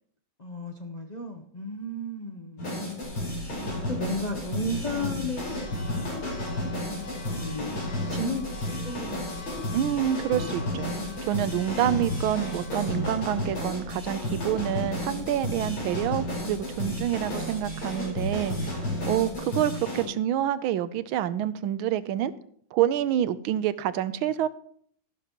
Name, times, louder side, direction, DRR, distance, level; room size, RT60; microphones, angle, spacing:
voice 1, 0.4-2.9 3.9-6.3 7.2-7.8 8.1-10.0 19.3-19.6, left 1 dB, 50° left, 3 dB, 0.5 m, -35 dB
sound 1, 2.6-20.0, left 1 dB, 85° left, 5.5 m, -32 dB
Church bell, 3.0-19.3, equal, 70° left, 2.4 m, -42 dB
voice 2, 9.7-10.9 11.2-18.7 19.1-22.3 22.7-24.5, right 11 dB, 85° right, 13 dB, 1.5 m, -27 dB
13.5 x 11.5 x 3.0 m, 0.62 s
omnidirectional pair, 2.2 m